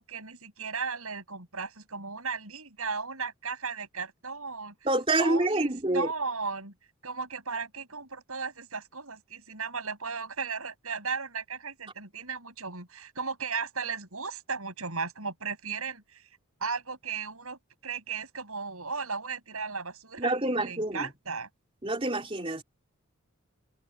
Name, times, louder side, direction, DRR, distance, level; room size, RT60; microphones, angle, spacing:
voice 1, 0.0-4.7 5.2-6.7 7.0-16.3 16.6-21.5, right 5 dB, 75° right, 7.8 m, -36 dB
voice 2, 4.8-6.1 20.2-21.1 21.8-22.6, right 2 dB, 25° right, 3.0 m, -27 dB
head